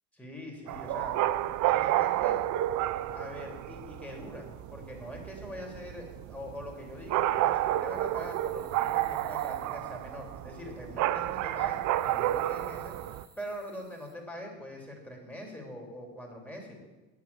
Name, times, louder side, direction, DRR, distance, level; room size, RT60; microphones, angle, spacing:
voice 1, 0.1-1.1 1.6-2.4 3.1-12.9 13.4-16.8, equal, 5° left, -1 dB, 3.1 m, -43 dB
sound 1, 0.7-13.2, right 14 dB, 40° right, 0.5 m, -30 dB
sound 2, 6.5-10.4 11.1-14.1, right 3 dB, 20° right, 1.8 m, -59 dB
9.0 x 7.6 x 7.0 m, 1.2 s
hypercardioid pair, 80°, 48 cm